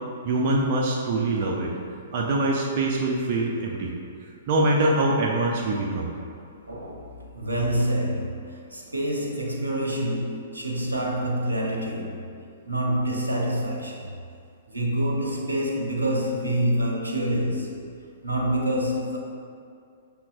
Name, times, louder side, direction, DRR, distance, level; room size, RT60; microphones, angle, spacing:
voice 1, 0.2-1.7 2.1-3.9 4.5-6.1, right 2 dB, 45° right, -2 dB, 0.5 m, -24 dB
voice 2, 6.7-8.4 8.7-12.2 12.7-14.1 14.7-17.7 18.2-19.2, right 1 dB, 85° right, -1 dB, 0.7 m, -26 dB
5.9 x 3.5 x 2.4 m, 2.3 s
figure-of-eight pair, 115°, 0 cm